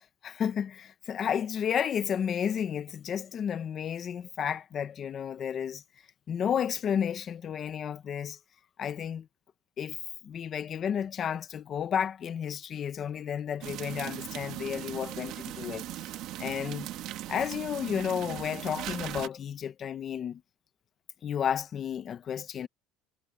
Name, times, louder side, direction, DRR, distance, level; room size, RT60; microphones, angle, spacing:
voice 1, 0.2-5.8 6.3-8.4 8.8-9.3 9.8-10.0 10.2-16.1 16.4-16.9 17.3-20.4 21.2-22.7, left 8 dB, 30° left, 0.9 m, -32 dB
sound 1, 13.6-19.3, right 14 dB, 50° right, 1.4 m, -39 dB
cardioid pair, 160°, 0 cm